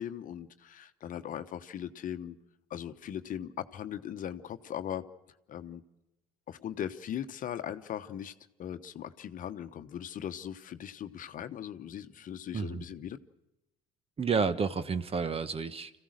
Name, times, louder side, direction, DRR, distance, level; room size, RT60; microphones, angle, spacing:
voice 1, 0.0-2.4 2.7-5.0 5.5-5.8 6.5-8.3 8.6-13.2, left 10 dB, 50° left, 10 dB, 1.0 m, -39 dB
voice 2, 14.2-15.9, right 5 dB, 35° right, 12 dB, 1.2 m, -30 dB
26.5 x 15.5 x 6.5 m, 0.95 s
hypercardioid pair, 60°, 17 cm